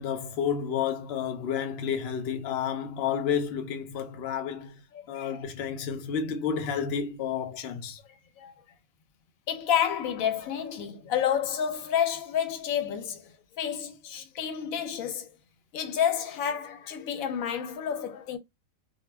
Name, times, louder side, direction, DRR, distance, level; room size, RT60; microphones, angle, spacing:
voice 1, 0.0-4.8 5.1-8.0, left 7 dB, 60° left, 0.7 m, -31 dB
voice 2, 4.9-5.4 8.4-8.5 9.5-15.3 15.7-18.4, left 9 dB, 85° left, 1.0 m, -30 dB
2.3 x 2.1 x 3.2 m
omnidirectional pair, 1.4 m